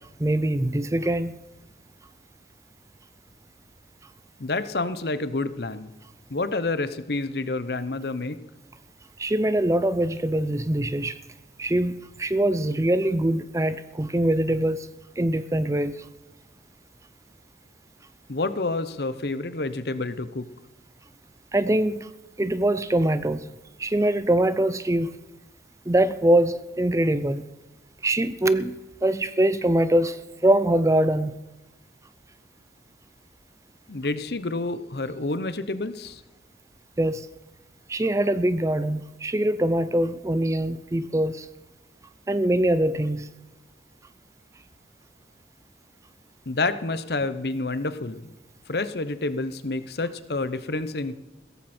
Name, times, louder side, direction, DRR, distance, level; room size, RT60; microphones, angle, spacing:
voice 1, 0.2-1.3 9.2-11.2 11.6-14.9 15.2-16.0 21.5-22.1 22.4-23.5 23.8-25.2 25.9-27.5 28.0-31.4 37.0-37.3 37.9-41.5 42.3-43.3, right 1 dB, 15° right, 0.5 m, -23 dB
voice 2, 4.4-5.9 6.3-8.4 18.3-20.5 33.9-36.2 46.5-48.3 48.7-51.2, left 3 dB, 60° left, 0.9 m, -28 dB
16.5 x 14.0 x 4.4 m
head